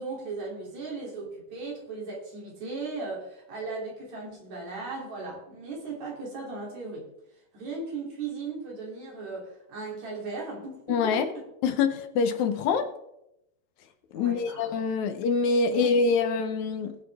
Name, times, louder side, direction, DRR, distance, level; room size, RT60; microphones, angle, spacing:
voice 1, 0.0-7.1 7.5-11.3 12.7-12.8 14.1-14.7 15.7-15.9, right 3 dB, 65° right, -2 dB, 4.3 m, -37 dB
voice 2, 10.9-11.3 11.6-12.9 14.1-17.0, left 5 dB, 75° left, 9 dB, 2.2 m, -25 dB
20.0 x 7.3 x 3.5 m, 0.85 s
omnidirectional pair, 3.5 m